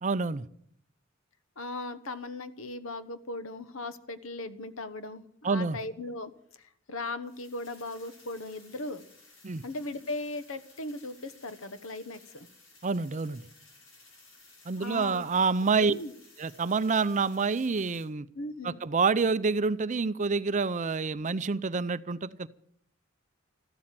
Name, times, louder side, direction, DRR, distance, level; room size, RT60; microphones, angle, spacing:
voice 1, 0.0-0.5 5.4-5.8 9.4-9.6 12.8-13.4 14.7-15.9 16.4-18.3 18.6-22.5, right 4 dB, 35° right, 16 dB, 0.5 m, -27 dB
voice 2, 1.6-9.0 9.6-12.5 14.8-15.3 15.8-16.1 18.3-18.8, left 2 dB, 85° left, 12 dB, 1.2 m, -38 dB
sound 1, 7.2-18.0, left 3 dB, 70° left, 5.8 m, -57 dB
14.0 x 13.0 x 7.6 m, 0.66 s
head